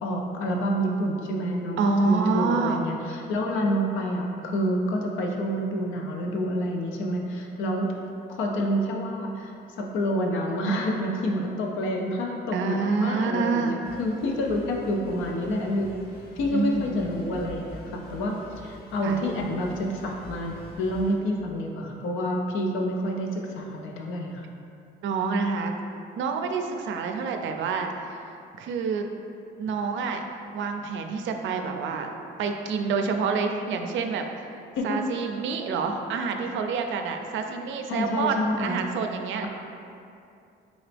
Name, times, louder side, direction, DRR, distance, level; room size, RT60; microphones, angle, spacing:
voice 1, 0.0-7.9 8.3-16.0 16.4-18.4 18.6-24.5 34.8-35.0 37.9-38.8, equal, 85° left, 1 dB, 0.5 m, -28 dB
voice 2, 1.8-2.8 12.5-13.8 16.5-17.4 19.0-19.2 25.0-25.7 26.2-28.2 28.6-29.1 29.6-30.2 30.5-32.1 32.4-34.5 34.8-39.5, right 5 dB, 75° right, 5 dB, 0.4 m, -27 dB
sound 1, 13.8-21.2, equal, 50° left, 0.9 m, -45 dB
3.9 x 2.9 x 3.3 m, 2.6 s
cardioid pair, 90°, 20 cm